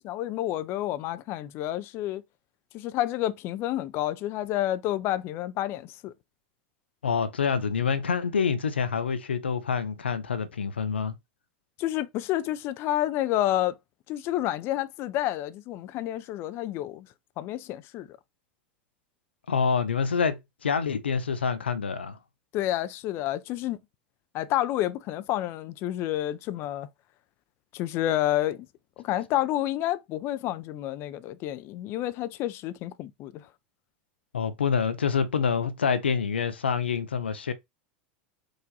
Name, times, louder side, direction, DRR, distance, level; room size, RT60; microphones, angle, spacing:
voice 1, 0.0-2.2 2.7-6.1 11.8-13.7 14.1-17.1 17.4-18.2 22.5-23.8 24.3-26.9 27.7-28.7 29.0-33.5, left 13 dB, 45° left, 0.5 m, -29 dB
voice 2, 7.0-11.1 19.5-22.2 34.3-37.5, left 6 dB, 80° left, 0.7 m, -27 dB
4.8 x 2.6 x 3.9 m
figure-of-eight pair, 85°, 6 cm